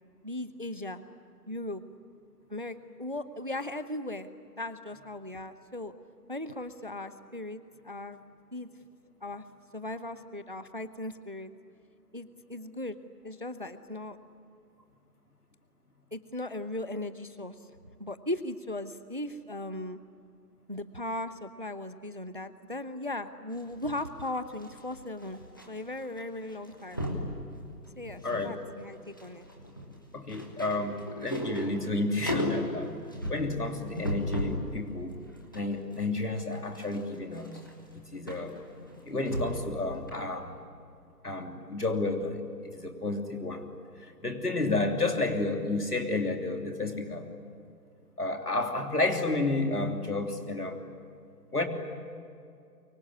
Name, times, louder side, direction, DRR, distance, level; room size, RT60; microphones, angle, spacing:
voice 1, 0.2-1.0 1.5-1.8 2.5-4.3 4.6-5.9 6.3-8.2 8.5-8.7 9.2-9.4 9.7-11.5 12.1-13.0 13.2-14.2 16.1-17.7 18.0-20.0 20.7-27.0 28.0-29.5, left 1 dB, 30° right, 12 dB, 0.8 m, -37 dB
sound 1, 23.5-25.7 25.9-26.2 26.5-27.3 27.8-28.5 28.8-34.7 35.1-39.7 40.1-40.2, equal, 15° left, 1.2 m, -36 dB
voice 2, 30.1-33.0 33.3-35.2 35.5-37.6 38.1-38.5 39.0-40.5 41.2-43.7 44.0-47.2 48.2-50.8 51.5-51.7, left 2 dB, 65° left, 4 dB, 3.3 m, -31 dB
24.5 x 24.0 x 9.9 m, 2.4 s
figure-of-eight pair, 160°, 49 cm